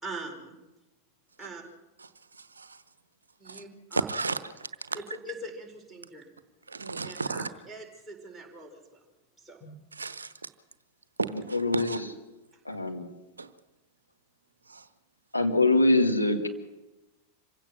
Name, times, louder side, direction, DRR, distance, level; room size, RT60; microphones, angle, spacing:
voice 1, 0.0-0.6 1.4-1.6 3.4-4.1 4.9-6.3 7.0-9.0 9.4-9.8, right 2 dB, 5° right, -1 dB, 4.8 m, -42 dB
voice 2, 2.0-2.8 3.4-3.6 3.9-5.0 6.7-7.5 9.9-10.5 11.2-12.0 13.4-13.5 14.7-14.9, right 4 dB, 75° right, 13 dB, 1.0 m, -34 dB
voice 3, 11.5-12.0 12.7-13.1 15.3-16.5, left 2 dB, 85° left, 3 dB, 1.9 m, -23 dB
26.0 x 16.5 x 6.1 m, 1.1 s
figure-of-eight pair, 90°, 0 cm